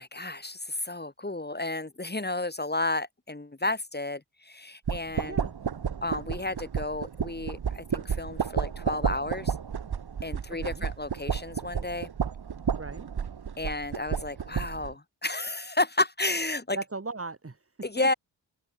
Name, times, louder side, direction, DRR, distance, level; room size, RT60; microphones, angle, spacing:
voice 1, 0.0-5.4 6.0-9.5 10.2-12.1 13.6-16.8 17.8-18.1, left 2 dB, 20° left, 3.4 m, -32 dB
sound 1, 4.9-14.9, right 7 dB, 60° right, 2.0 m, -32 dB
voice 2, 10.5-10.9 12.8-13.1 16.7-17.7 18.0-18.1, right 3 dB, 30° right, 3.3 m, -38 dB
open air
supercardioid pair, 40°, 43 cm